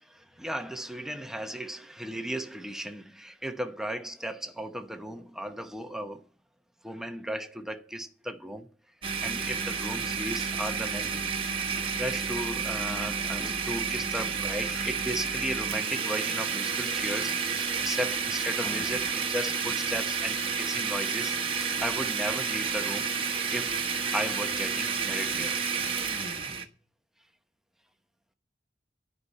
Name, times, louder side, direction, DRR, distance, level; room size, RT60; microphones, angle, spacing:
voice 1, 0.0-6.2 6.8-8.7 9.2-11.2 11.6-23.1 23.5-23.8 24.1-25.6, equal, 5° right, 0.8 m, -35 dB
Domestic sounds home sounds, 9.0-26.6, right 5 dB, 30° right, 1.1 m, -30 dB
11.0 x 5.6 x 8.3 m
head